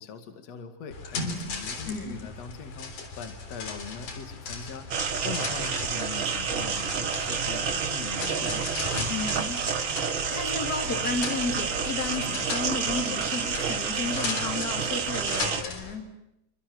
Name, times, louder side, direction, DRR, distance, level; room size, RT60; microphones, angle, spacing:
voice 1, 0.0-4.9 5.2-8.7, left 6 dB, 60° left, 7 dB, 3.2 m, -41 dB
sound 1, 0.9-15.9, left 4 dB, 85° left, 5.1 m, -37 dB
voice 2, 1.9-2.3 9.1-16.2, left 4 dB, 30° left, 4 dB, 4.3 m, -33 dB
sound 2, 4.9-15.6, right 6 dB, 45° right, 2.2 m, -29 dB
Bowed string instrument, 8.2-11.2, right 3 dB, 5° right, 2.5 m, -48 dB
28.5 x 25.5 x 7.7 m, 0.83 s
omnidirectional pair, 3.5 m